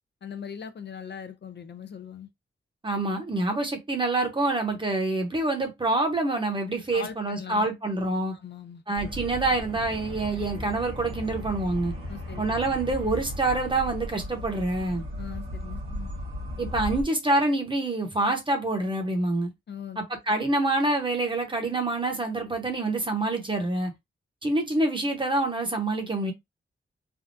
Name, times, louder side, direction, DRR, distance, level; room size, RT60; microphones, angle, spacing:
voice 1, 0.2-2.3 6.9-7.7 8.3-8.8 12.1-12.4 15.2-16.1 19.7-20.0, left 7 dB, 55° left, 0.4 m, -40 dB
voice 2, 2.8-8.3 8.9-11.9 12.4-15.0 16.6-19.5 20.0-23.9 24.4-26.3, right 2 dB, 25° right, 0.9 m, -26 dB
sound 1, 9.0-17.0, equal, 90° right, 1.2 m, -36 dB
3.5 x 2.3 x 2.6 m
wide cardioid pair, 125°, 21 cm